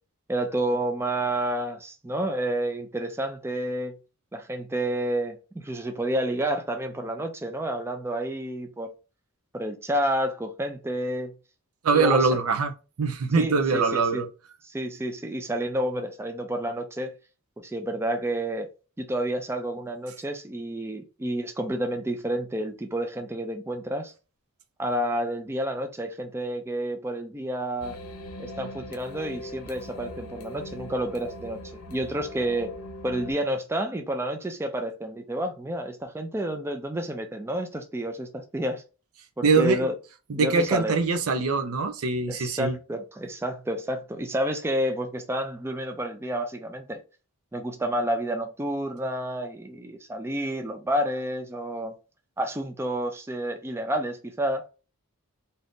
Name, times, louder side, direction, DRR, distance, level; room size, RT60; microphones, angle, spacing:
voice 1, 0.3-3.9 4.3-8.9 9.5-11.3 11.9-12.3 13.4-14.2 14.6-17.1 17.6-18.7 19.0-24.1 24.8-28.0 28.4-32.7 33.0-38.8 39.4-39.9 40.3-41.0 42.3-47.0 47.5-51.9 52.4-54.6, right 1 dB, 10° right, 0.3 m, -30 dB
voice 2, 11.8-12.7 13.0-14.3 39.4-39.9 40.3-42.8, right 4 dB, 70° right, 0.6 m, -23 dB
sound 1, 27.8-33.3, left 1 dB, 80° left, 0.6 m, -40 dB
2.7 x 2.6 x 3.5 m
head